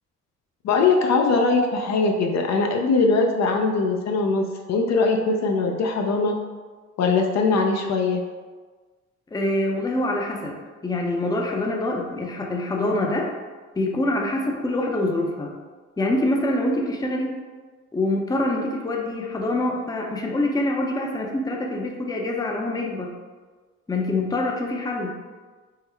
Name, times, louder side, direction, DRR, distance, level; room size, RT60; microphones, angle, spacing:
voice 1, 0.6-6.3 7.0-8.2, left 3 dB, 60° left, 2 dB, 0.5 m, -21 dB
voice 2, 9.3-10.6 10.8-13.3 13.8-15.5 16.0-17.4 17.9-23.1 23.9-25.1, left 1 dB, 15° left, 0 dB, 0.5 m, -25 dB
3.8 x 2.0 x 4.4 m, 1.4 s
cardioid pair, 90°, 30 cm